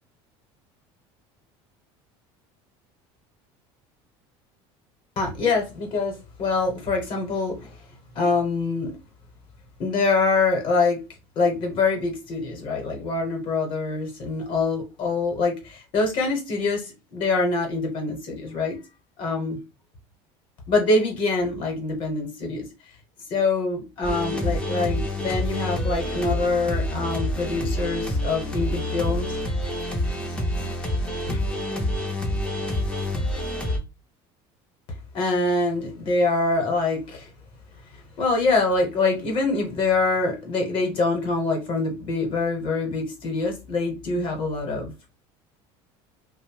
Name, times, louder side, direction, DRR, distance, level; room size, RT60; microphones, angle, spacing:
voice 1, 5.2-7.8 8.1-8.9 9.8-11.0 11.4-18.8 19.2-19.6 20.7-22.7 23.3-29.3 31.3-31.4 35.1-37.3 38.2-44.9, left 3 dB, 45° left, 0.8 m, -24 dB
sound 1, 24.0-33.8, left 1 dB, 10° left, 0.4 m, -27 dB
2.6 x 2.0 x 3.1 m
cardioid pair, 160°, 12 cm